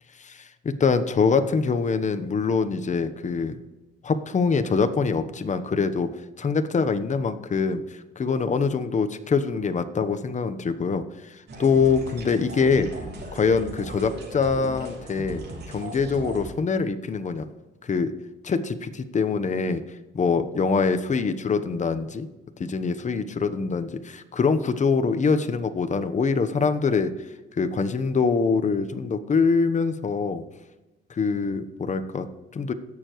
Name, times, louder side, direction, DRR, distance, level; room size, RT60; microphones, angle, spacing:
voice 1, 0.2-3.6 4.0-6.1 6.4-7.8 8.2-12.9 13.3-15.4 15.7-17.5 17.8-18.1 18.4-19.8 20.1-22.3 22.6-27.1 27.6-30.4 31.1-32.7, left 5 dB, 35° left, 10 dB, 1.0 m, -24 dB
sound 1, 11.5-16.5, right 2 dB, 55° right, 3.2 m, -38 dB
17.0 x 6.8 x 3.1 m, 1.1 s
cardioid pair, 90°, 20 cm